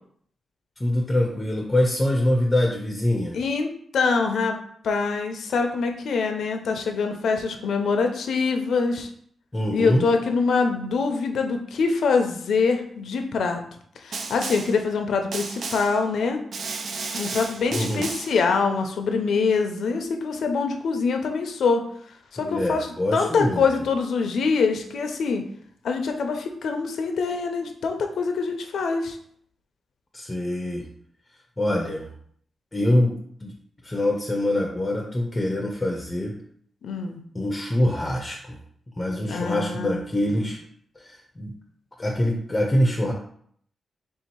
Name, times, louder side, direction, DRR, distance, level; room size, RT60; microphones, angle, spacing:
voice 1, 0.8-3.4 9.5-10.1 17.7-18.1 22.4-23.6 30.1-30.9 31.6-32.1 32.7-33.5 33.8-36.3 37.3-38.6 39.0-40.6 41.0-41.5 42.0-43.1, left 1 dB, 20° left, 1 dB, 0.6 m, -24 dB
voice 2, 3.3-4.5 4.8-9.1 9.7-13.6 14.0-16.4 17.1-21.9 22.3-25.4 25.8-29.2 36.8-37.2 39.3-40.0, left 4 dB, 80° left, 5 dB, 0.5 m, -24 dB
Snare drum, 14.1-14.8 15.3-16.0 16.5-18.4, right 4 dB, 65° right, 0.4 m, -33 dB
3.5 x 2.7 x 4.4 m, 0.63 s
cardioid pair, 85°, 0 cm